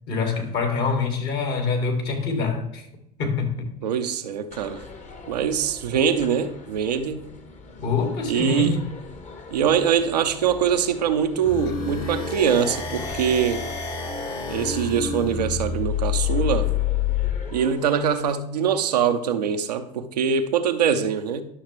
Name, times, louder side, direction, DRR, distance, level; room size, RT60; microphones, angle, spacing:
voice 1, 0.1-2.9 3.2-3.7 7.8-8.8, left 4 dB, 55° left, 2.2 m, -25 dB
voice 2, 3.8-4.8 5.3-7.2 8.2-8.8 9.5-13.6 14.5-16.7 17.5-21.4, right 7 dB, 90° right, 0.7 m, -23 dB
sound 1, 4.5-18.4, left 4 dB, 35° left, 1.3 m, -43 dB
sound 2, 11.4-17.4, left 7 dB, 80° left, 3.6 m, -27 dB
11.0 x 6.4 x 3.1 m
hypercardioid pair, 75°, 20 cm